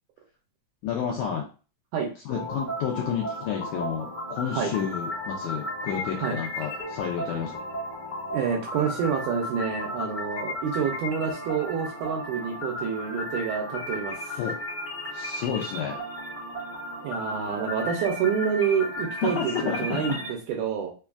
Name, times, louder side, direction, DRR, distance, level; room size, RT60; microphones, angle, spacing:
voice 1, 0.8-1.4 2.2-7.6 14.4-14.6 15.1-16.0 19.2-20.2, left 8 dB, 80° left, -1 dB, 1.8 m, -30 dB
sound 1, 2.3-20.3, left 1 dB, 30° left, 1.0 m, -35 dB
voice 2, 8.3-14.4 17.0-20.9, right 7 dB, 80° right, 1 dB, 2.0 m, -28 dB
5.1 x 2.3 x 2.3 m, 0.34 s
omnidirectional pair, 3.9 m